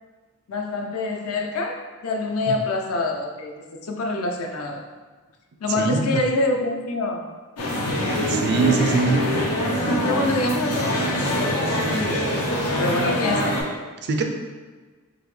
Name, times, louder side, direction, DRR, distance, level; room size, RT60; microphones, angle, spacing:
voice 1, 0.5-4.9 5.6-7.3 10.0-11.0 11.3-12.3 12.8-13.6, left 2 dB, 70° left, 2 dB, 0.5 m, -26 dB
voice 2, 5.8-6.2 8.3-9.2 14.0-14.2, right 4 dB, 50° right, 4 dB, 0.4 m, -22 dB
sound 1, 7.6-13.6, equal, 90° left, 0.9 m, -24 dB
3.8 x 2.8 x 3.2 m, 1.4 s
head